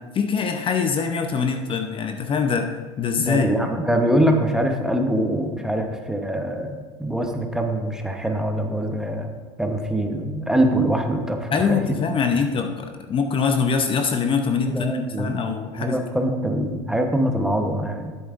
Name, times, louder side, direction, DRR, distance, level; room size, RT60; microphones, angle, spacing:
voice 1, 0.1-3.5 11.5-16.0, left 5 dB, 35° left, 6 dB, 0.7 m, -23 dB
voice 2, 3.2-9.3 9.6-12.0 14.7-15.3 15.8-18.2, right 1 dB, 5° right, 4 dB, 0.9 m, -23 dB
11.0 x 8.4 x 2.5 m, 1.4 s
hypercardioid pair, 95°, 16 cm